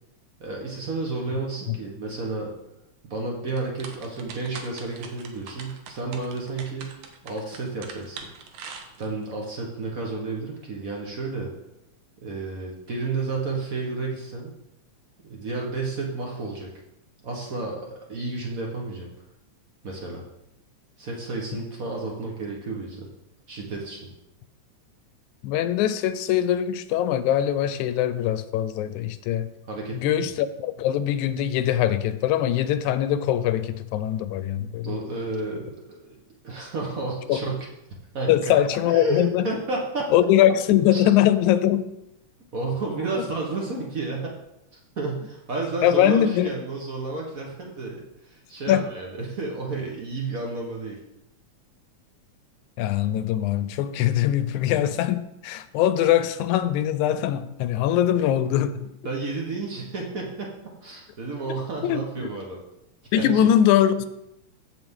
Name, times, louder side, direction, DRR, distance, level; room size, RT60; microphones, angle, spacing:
voice 1, 0.4-2.5 3.0-6.9 7.2-8.3 9.0-11.5 12.2-14.5 15.2-16.7 17.2-19.1 19.8-20.2 21.0-23.1 23.5-24.1 29.7-30.3 34.8-36.2 36.4-37.7 38.1-38.5 38.8-40.1 40.9-41.0 42.5-44.3 45.0-51.0 59.0-60.5 60.8-62.6 63.0-63.5, right 3 dB, 55° right, -1 dB, 0.9 m, -31 dB
sound 1, 3.5-9.3, right 6 dB, 90° right, 2.4 m, -42 dB
voice 2, 25.4-29.5 29.9-35.0 37.3-37.4 38.3-39.5 40.1-41.9 45.8-46.5 48.7-48.9 52.8-58.8 61.8-62.3 63.1-64.1, left 11 dB, 85° left, 13 dB, 1.9 m, -22 dB
14.0 x 5.1 x 3.7 m, 0.86 s
omnidirectional pair, 3.4 m